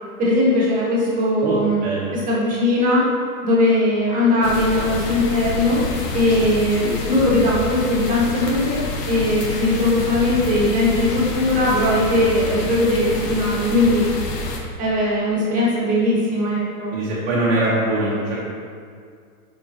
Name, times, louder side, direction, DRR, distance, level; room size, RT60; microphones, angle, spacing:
voice 1, 0.2-1.8 2.1-3.0 3.4-5.8 6.1-14.1 14.8-16.9, left 1 dB, 15° right, -6 dB, 1.8 m, -19 dB
voice 2, 1.4-2.2 16.9-18.4, right 2 dB, 40° right, -7 dB, 1.3 m, -22 dB
sound 1, 4.4-14.6, left 3 dB, 85° left, 1.3 m, -28 dB
10.0 x 5.2 x 3.0 m, 2.2 s
hypercardioid pair, 150°, 47 cm